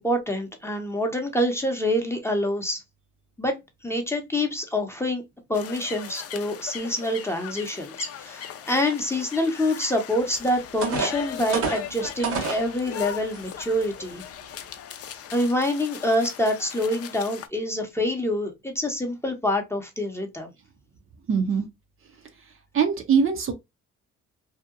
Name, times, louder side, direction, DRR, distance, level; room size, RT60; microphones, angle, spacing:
voice 1, 0.0-2.8 3.4-3.5 3.8-5.2 5.5-14.2 15.3-20.5, left 1 dB, 10° left, 0.6 m, -26 dB
sound 1, 5.5-17.5, left 9 dB, 55° left, 0.4 m, -39 dB
sound 2, 10.2-10.3 10.8-12.7 13.3-13.4 13.9-14.2, right 4 dB, 90° right, 1.2 m, -28 dB
voice 2, 21.3-21.7 22.7-23.5, right 6 dB, 45° right, 0.6 m, -22 dB
2.7 x 2.1 x 2.4 m
cardioid pair, 90°, 30 cm